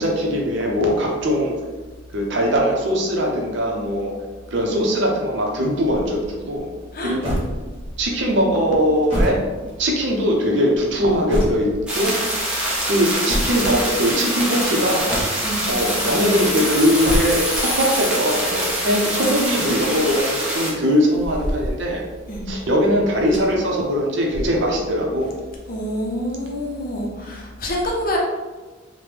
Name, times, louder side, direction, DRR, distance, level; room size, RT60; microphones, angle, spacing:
voice 1, 0.0-1.5 2.1-4.1 4.5-6.7 7.0-7.3 8.0-9.4 9.8-12.2 12.9-15.1 15.6-22.0 22.5-25.3, equal, 60° right, 0 dB, 0.6 m, -21 dB
sound 1, 7.2-8.0 8.8-10.2 10.8-11.9 13.1-13.7 14.9-15.6 16.8-17.7 19.2-20.1 21.0-22.0 23.2-23.8 24.1-24.2 25.1-25.9, equal, 30° right, 1.1 m, -28 dB
sound 2, 11.9-20.7, right 1 dB, 5° right, 0.6 m, -25 dB
sound 3, 15.6-20.4, left 1 dB, 20° left, 1.1 m, -33 dB
voice 2, 25.7-28.2, equal, 45° left, -2 dB, 0.6 m, -26 dB
3.2 x 2.1 x 3.2 m, 1.3 s
head